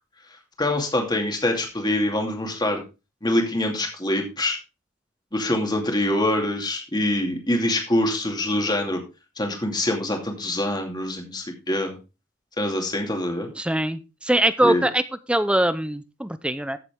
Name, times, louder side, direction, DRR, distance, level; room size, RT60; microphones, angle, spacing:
voice 1, 0.6-2.8 3.2-4.6 5.3-9.0 9.4-12.0 12.6-13.5 14.6-14.8, left 1 dB, 20° left, 3 dB, 2.5 m, -24 dB
voice 2, 13.6-15.0 15.3-16.8, right 1 dB, 5° right, 13 dB, 0.6 m, -22 dB
14.5 x 7.2 x 3.6 m, 0.28 s
head